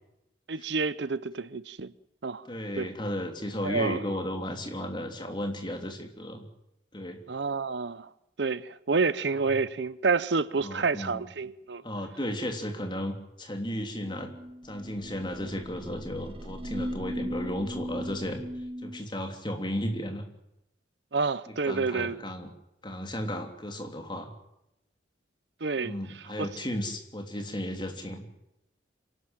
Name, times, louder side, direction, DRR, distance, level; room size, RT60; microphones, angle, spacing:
voice 1, 0.5-1.9 2.2-2.4 2.8-2.9 3.6-4.0 7.3-8.1 8.4-11.8 21.1-22.2 25.6-25.9 26.4-26.5, right 4 dB, 65° right, 0.7 m, -29 dB
voice 2, 2.4-6.5 6.9-7.2 10.6-11.2 11.8-14.3 14.6-18.4 18.8-20.2 21.5-22.5 22.8-24.3 25.8-28.3, equal, 25° left, 3.2 m, -34 dB
sound 1, 14.0-19.0, equal, 30° right, 1.5 m, -38 dB
26.5 x 12.5 x 9.0 m
head